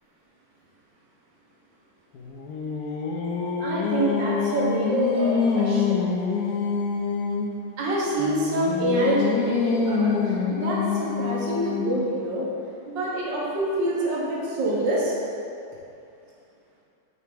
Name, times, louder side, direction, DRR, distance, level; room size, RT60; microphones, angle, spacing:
Singing, 2.1-7.6 8.2-12.1, left 5 dB, 65° left, 1.1 m, -26 dB
voice 1, 3.6-6.0 7.8-12.5 12.9-15.2, right 1 dB, 80° right, -5 dB, 1.9 m, -26 dB
8.3 x 3.4 x 5.2 m, 2.6 s
omnidirectional pair, 2.0 m